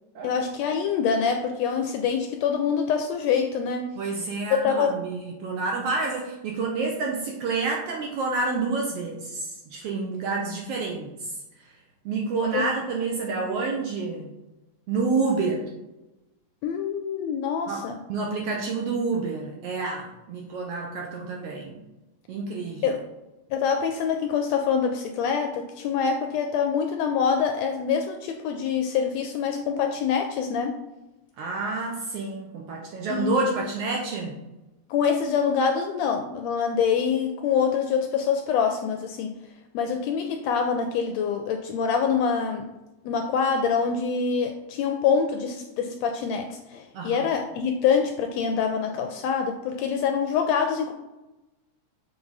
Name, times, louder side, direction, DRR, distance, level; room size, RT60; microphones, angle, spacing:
voice 1, 0.2-3.9 4.5-4.9 12.5-12.6 16.6-18.0 22.8-23.0 23.5-30.8 33.1-33.6 34.9-39.3 39.7-42.7 43.0-50.9, left 6 dB, 80° left, 5 dB, 1.5 m, -25 dB
voice 2, 4.0-11.3 12.0-14.3 14.9-15.7 17.7-17.8 18.1-21.8 22.3-23.0 31.4-34.4 46.9-47.3, right 3 dB, 75° right, -1 dB, 1.5 m, -28 dB
7.0 x 3.5 x 4.0 m, 1.0 s
omnidirectional pair, 3.4 m